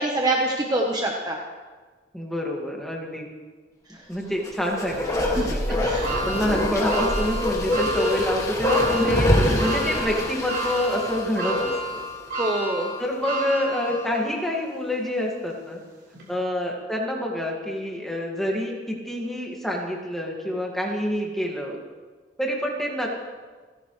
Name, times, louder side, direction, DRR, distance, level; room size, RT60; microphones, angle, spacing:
voice 1, 0.0-1.4 3.9-4.0 5.3-5.5 5.8-6.1 12.4-12.9, right 2 dB, 20° right, 0 dB, 1.1 m, -25 dB
voice 2, 2.1-3.3 4.1-5.8 6.3-12.0 13.0-15.8 16.3-21.8 22.4-23.1, equal, ahead, -1 dB, 2.1 m, -27 dB
Bark, 4.4-12.0 12.3-12.4, left 1 dB, 20° left, 2.2 m, -25 dB
sound 1, 6.0-14.4 14.9-15.0 16.1-16.2, right 1 dB, 65° right, 4.6 m, -31 dB
29.0 x 11.0 x 3.3 m, 1.4 s
head